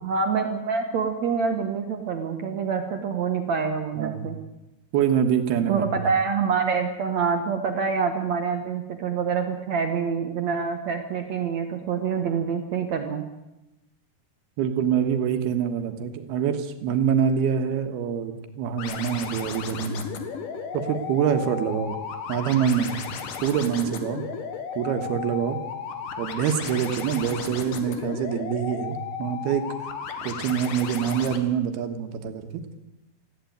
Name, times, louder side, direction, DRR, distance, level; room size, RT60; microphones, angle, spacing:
voice 1, 0.0-4.4 5.7-13.3, right 6 dB, 60° right, 5 dB, 2.1 m, -26 dB
voice 2, 4.0-4.3 4.9-5.9 14.6-20.0 20.7-22.0 22.3-22.9 23.4-24.2 24.8-25.6 26.2-29.6 30.2-32.6, right 8 dB, 90° right, 6 dB, 3.3 m, -25 dB
sound 1, 18.8-31.4, left 7 dB, 65° left, 3.1 m, -34 dB
19.0 x 15.0 x 9.3 m, 0.97 s
omnidirectional pair, 4.4 m